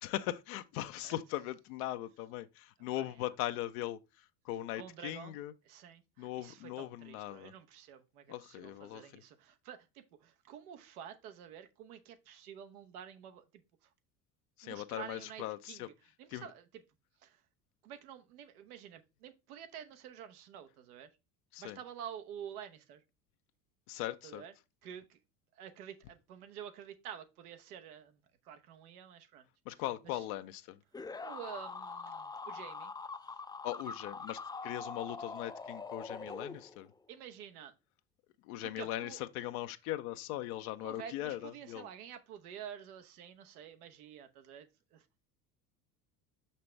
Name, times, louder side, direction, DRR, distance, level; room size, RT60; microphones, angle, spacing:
voice 1, 0.0-4.0 4.4-5.5 6.2-7.5 8.3-9.2 14.6-15.9 16.3-16.5 21.5-21.8 23.9-24.4 29.7-30.8 33.6-36.9 38.4-41.9, left 14 dB, 75° left, 0.7 m, -39 dB
voice 2, 4.8-5.4 5.6-13.9 14.6-15.9 16.2-16.8 17.2-17.4 17.8-21.1 21.6-23.0 24.2-24.5 24.8-25.2 25.5-28.2 28.4-29.5 29.7-30.3 31.2-32.9 37.1-37.7 38.6-39.2 40.8-45.3, right 9 dB, 85° right, 1.0 m, -49 dB
sound 1, 30.9-37.0, left 4 dB, 10° left, 0.4 m, -43 dB
6.0 x 5.6 x 3.2 m
hypercardioid pair, 80°, 44 cm